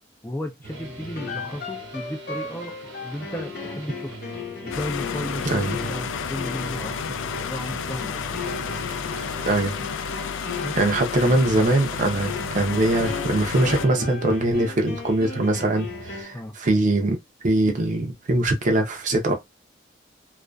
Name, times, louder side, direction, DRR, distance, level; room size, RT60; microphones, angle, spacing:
voice 1, 0.2-2.8 3.0-4.2 4.6-8.2 10.6-11.1 16.3-16.5, left 1 dB, 10° left, 0.3 m, -34 dB
sound 1, 0.6-16.2, right 1 dB, 75° right, 1.0 m, -42 dB
sound 2, 1.1-16.5, left 4 dB, 55° left, 0.8 m, -36 dB
sound 3, 4.7-13.9, left 6 dB, 85° left, 0.3 m, -31 dB
voice 2, 10.8-17.2 17.4-19.3, right 2 dB, 45° right, 0.5 m, -22 dB
2.4 x 2.3 x 2.2 m
head